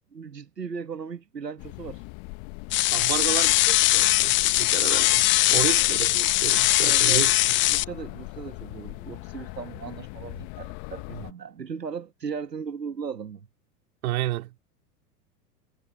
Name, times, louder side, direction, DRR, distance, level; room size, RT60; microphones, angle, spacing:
voice 1, 0.1-2.0 5.4-5.7 6.8-7.3 7.7-13.5, right 6 dB, 85° right, 1.7 m, -37 dB
sound 1, 1.6-11.3, left 33 dB, 45° left, 1.5 m, -40 dB
sound 2, 2.7-7.8, left 18 dB, 25° left, 0.6 m, -21 dB
voice 2, 2.9-5.2 5.5-7.3 14.0-14.5, right 16 dB, 60° right, 3.6 m, -31 dB
figure-of-eight pair, 95°, 48 cm